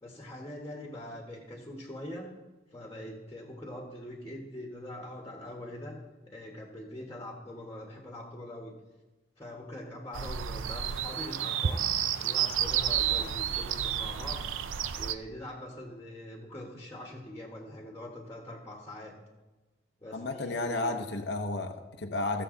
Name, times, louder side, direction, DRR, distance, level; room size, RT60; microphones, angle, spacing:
voice 1, 0.0-2.3 2.7-6.0 6.3-8.7 9.4-11.9 12.2-14.4 15.0-19.1 20.0-21.1, left 1 dB, 15° left, -1 dB, 1.3 m, -43 dB
sound 1, 10.1-15.2, right 9 dB, 85° right, 0.5 m, -30 dB
voice 2, 20.1-22.4, left 2 dB, 60° left, 4 dB, 0.7 m, -32 dB
15.5 x 6.8 x 3.8 m, 1.2 s
head